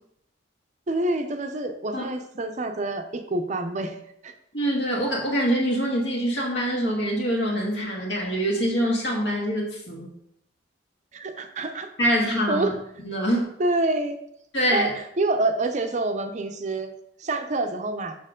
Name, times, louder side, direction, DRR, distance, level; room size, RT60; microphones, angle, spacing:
voice 1, 0.9-4.0 4.2-4.3 11.1-11.9 12.5-12.8 13.6-14.2 14.7-16.9 17.2-18.2, right 2 dB, 40° right, 6 dB, 0.6 m, -27 dB
voice 2, 4.5-10.1 12.0-12.7 13.0-13.5 14.5-14.9, equal, 60° left, -2 dB, 2.0 m, -24 dB
6.6 x 5.8 x 3.7 m, 0.74 s
head